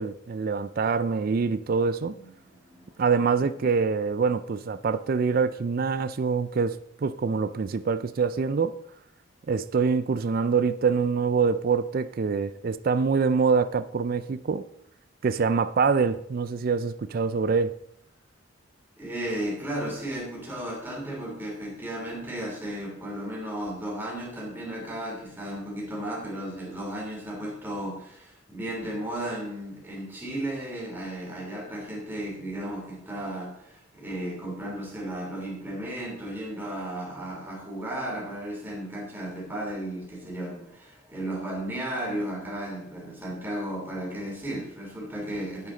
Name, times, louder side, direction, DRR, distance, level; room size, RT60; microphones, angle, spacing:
voice 1, 0.0-2.1 3.0-8.7 9.5-14.6 15.2-17.7, right 5 dB, 45° right, 13 dB, 0.4 m, -25 dB
voice 2, 2.0-3.0 19.0-45.7, right 1 dB, 10° right, -4 dB, 3.3 m, -34 dB
9.6 x 8.6 x 4.0 m, 0.75 s
head